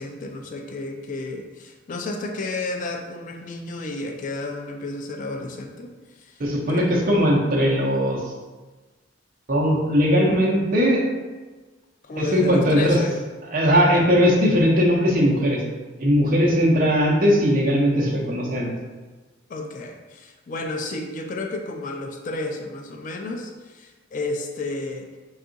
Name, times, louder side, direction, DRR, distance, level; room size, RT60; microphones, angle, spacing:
voice 1, 0.0-5.9 6.2-6.4 6.7-7.2 12.0-13.2 19.5-25.1, left 2 dB, 40° left, 3 dB, 0.3 m, -32 dB
voice 2, 6.4-8.2 9.5-11.0 12.2-13.0 13.5-15.6 16.0-18.7, equal, 45° right, -2 dB, 0.7 m, -19 dB
3.5 x 2.4 x 3.9 m, 1.3 s
head